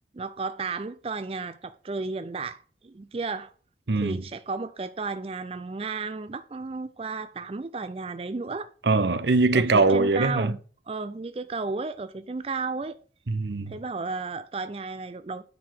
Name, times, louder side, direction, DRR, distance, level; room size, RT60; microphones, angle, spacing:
voice 1, 0.1-3.5 4.0-8.7 9.5-10.6 10.9-13.0 13.7-15.4, right 4 dB, 30° right, 0.4 m, -33 dB
voice 2, 3.9-4.2 8.8-10.5 13.3-13.7, right 3 dB, 75° right, 0.8 m, -22 dB
9.3 x 4.7 x 6.0 m
head